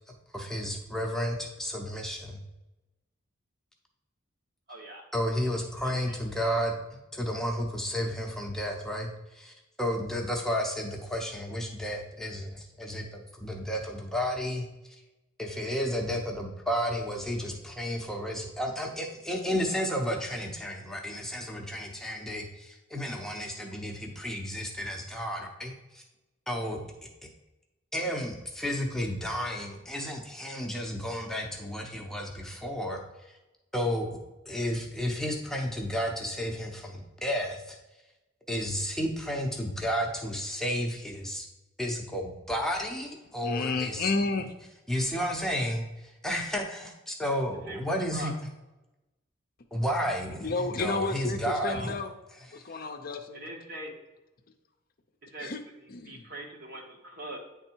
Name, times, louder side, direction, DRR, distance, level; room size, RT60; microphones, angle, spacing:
voice 1, 0.3-2.4 5.1-6.7 7.1-9.1 9.3-14.6 15.4-26.0 26.5-26.8 27.9-33.0 33.7-34.2 34.5-37.8 38.5-41.5 41.8-44.1 44.9-48.3 49.7-51.9, equal, ahead, 0 dB, 0.7 m, -32 dB
voice 2, 4.7-5.1 5.8-6.2 47.7-48.3 51.7-52.0 53.3-54.0 55.3-55.5 56.0-57.4, right 1 dB, 50° right, 1 dB, 1.3 m, -42 dB
voice 3, 43.4-44.5 50.4-52.1 52.5-53.4 55.4-55.6 55.9-56.3, left 3 dB, 45° left, 5 dB, 0.6 m, -31 dB
9.2 x 3.5 x 4.4 m, 1.0 s
head